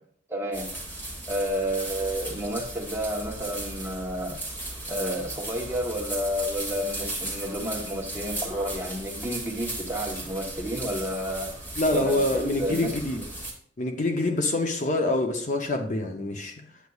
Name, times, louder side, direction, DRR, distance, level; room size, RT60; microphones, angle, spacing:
voice 1, 0.3-0.7 1.3-4.4 4.9-11.5 11.9-13.0, equal, 15° right, 0 dB, 1.1 m, -31 dB
sound 1, 0.5-13.5, right 1 dB, 10° left, 1.4 m, -36 dB
voice 2, 11.8-13.2 13.8-16.7, left 2 dB, 40° left, 5 dB, 0.7 m, -26 dB
8.2 x 8.1 x 2.4 m, 0.62 s
head